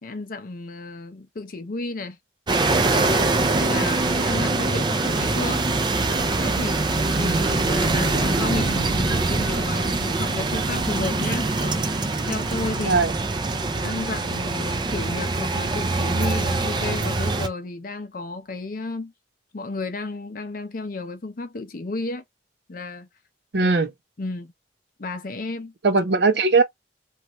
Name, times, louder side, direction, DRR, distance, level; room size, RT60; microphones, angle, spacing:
voice 1, 0.0-2.2 2.9-3.3 3.6-5.7 6.3-6.9 7.2-11.9 12.3-13.0 13.8-19.1 19.5-22.2 22.7-23.1 23.6-23.7 24.2-24.5 25.0-25.7, left 3 dB, 50° left, 0.6 m, -32 dB
sound 1, 2.5-17.5, right 3 dB, 25° right, 0.4 m, -23 dB
voice 2, 23.5-23.9 25.8-26.6, right 3 dB, 65° right, 0.6 m, -19 dB
2.7 x 2.4 x 3.0 m
head